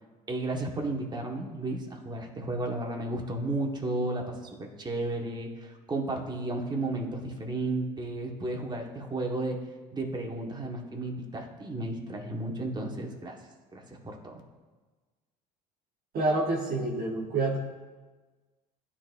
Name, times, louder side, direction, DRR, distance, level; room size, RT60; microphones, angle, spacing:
voice 1, 0.3-9.6 9.9-13.4 13.7-14.3, right 2 dB, 20° right, 1 dB, 1.5 m, -33 dB
voice 2, 16.1-17.6, right 2 dB, 50° right, -3 dB, 1.3 m, -27 dB
12.5 x 4.3 x 2.6 m, 1.3 s
hypercardioid pair, 70°, 20 cm